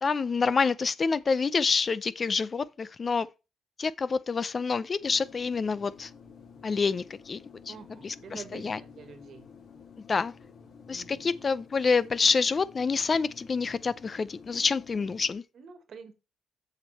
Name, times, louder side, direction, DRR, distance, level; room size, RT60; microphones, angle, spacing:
voice 1, 0.0-3.3 3.8-6.1 6.6-7.4 7.7-7.8 8.0-8.8 10.1-10.3 10.9-15.4, left 5 dB, 35° left, 0.5 m, -27 dB
sound 1, 5.0-15.3, left 6 dB, 70° left, 3.1 m, -51 dB
voice 2, 7.7-9.5 10.9-11.3 15.5-16.1, right 6 dB, 60° right, 1.8 m, -47 dB
7.3 x 6.4 x 4.1 m
cardioid pair, 90°, 0 cm